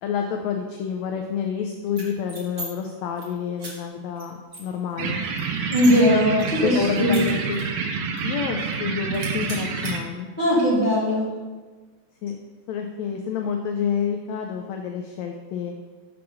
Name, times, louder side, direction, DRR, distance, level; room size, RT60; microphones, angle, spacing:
voice 1, 0.0-5.2 6.6-7.6 8.2-10.3 12.2-12.4 12.7-15.7, left 7 dB, 85° left, 4 dB, 1.6 m, -28 dB
sound 1, 1.9-2.7 3.0-3.3 3.6-3.7 4.2-4.3 4.5-6.0 6.4-7.8 8.2-8.3 8.6-8.9 9.1-9.9, right 2 dB, 65° right, 0.7 m, -38 dB
sound 2, 5.0-10.0, right 5 dB, 90° right, 2.3 m, -28 dB
voice 2, 5.7-7.2 10.4-11.3, equal, 20° right, -10 dB, 1.8 m, -19 dB
6.1 x 6.0 x 3.6 m, 1.3 s
omnidirectional pair, 3.6 m